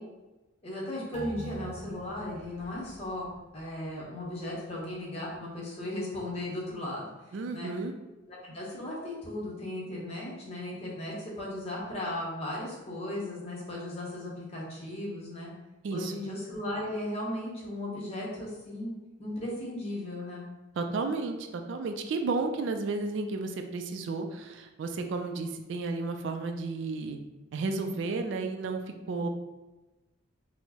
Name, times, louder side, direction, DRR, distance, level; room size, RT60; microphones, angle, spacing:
voice 1, 0.6-3.3 3.5-7.1 7.5-7.7 8.3-15.5 15.9-18.9 19.2-20.5, left 1 dB, 30° left, -4 dB, 0.9 m, -36 dB
sound 1, 1.1-4.0 4.4-4.5, right 1 dB, 20° right, 0.6 m, -44 dB
voice 2, 7.3-7.9 15.8-16.1 20.8-27.2 27.5-28.8 29.1-29.3, right 3 dB, 65° right, 5 dB, 0.3 m, -32 dB
4.4 x 2.0 x 2.8 m, 1.1 s
head